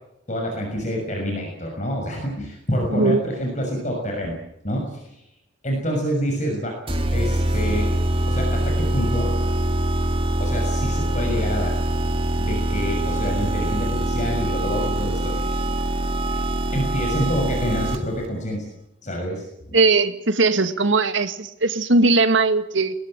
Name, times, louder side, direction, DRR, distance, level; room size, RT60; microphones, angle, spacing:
voice 1, 0.3-4.4 4.6-5.2 5.6-6.8 7.1-7.9 8.3-9.3 10.4-11.7 12.4-15.5 16.7-18.7 19.0-19.4, equal, 40° left, 1 dB, 6.3 m, -27 dB
voice 2, 2.9-3.2 19.7-22.9, right 3 dB, 75° right, 10 dB, 2.0 m, -19 dB
sound 1, 6.9-18.3, right 1 dB, 30° right, 2.3 m, -23 dB
22.0 x 21.0 x 9.0 m, 0.83 s
head